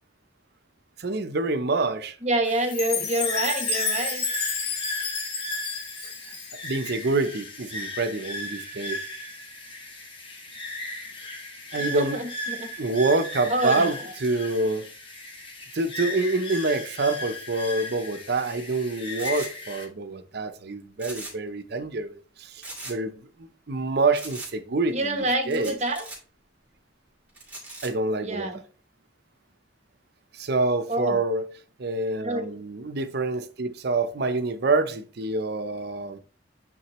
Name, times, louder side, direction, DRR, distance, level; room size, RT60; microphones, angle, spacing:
voice 1, 1.0-2.2 6.3-6.4 6.6-9.0 11.7-12.2 12.8-14.9 15.7-25.8 27.8-28.5 30.3-31.5 31.8-36.2, right 3 dB, 60° right, 0.6 m, -27 dB
voice 2, 2.2-4.2 11.8-12.7 13.5-13.9 24.9-26.0 28.2-28.6 30.9-31.2 32.2-32.6, right 1 dB, 35° right, 1.1 m, -27 dB
sound 1, 2.4-19.9, left 2 dB, 30° left, 1.3 m, -36 dB
Chime, 2.7-6.9, left 5 dB, 55° left, 1.5 m, -30 dB
sound 2, 19.2-19.5 21.0-21.5 21.8-21.9 22.6-23.0 24.1-24.5 25.5-26.2 27.3-27.9, right 2 dB, 10° right, 2.4 m, -39 dB
8.8 x 3.7 x 3.1 m
head